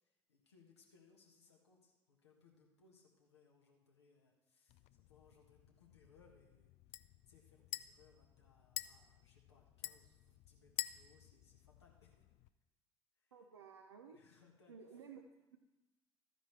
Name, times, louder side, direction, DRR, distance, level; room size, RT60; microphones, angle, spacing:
voice 1, 0.0-12.2 13.2-13.3 14.1-14.8, left 5 dB, 80° left, -1 dB, 1.6 m, -69 dB
sound 1, 4.7-12.5, left 15 dB, 55° left, 0.4 m, -50 dB
voice 2, 13.3-14.2 14.7-15.2 15.5-15.6, right 6 dB, 80° right, 3 dB, 0.6 m, -55 dB
13.0 x 10.0 x 3.3 m, 1.1 s
figure-of-eight pair, 55°, 14 cm